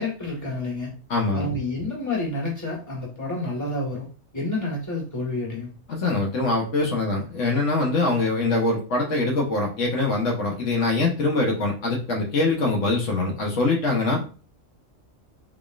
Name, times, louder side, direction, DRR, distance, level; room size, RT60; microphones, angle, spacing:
voice 1, 0.0-0.9 1.3-4.1 4.3-5.7, left 2 dB, 15° left, 1.5 m, -29 dB
voice 2, 1.1-1.5 5.9-14.3, left 3 dB, 70° left, 1.3 m, -23 dB
3.8 x 3.6 x 2.4 m
omnidirectional pair, 1.3 m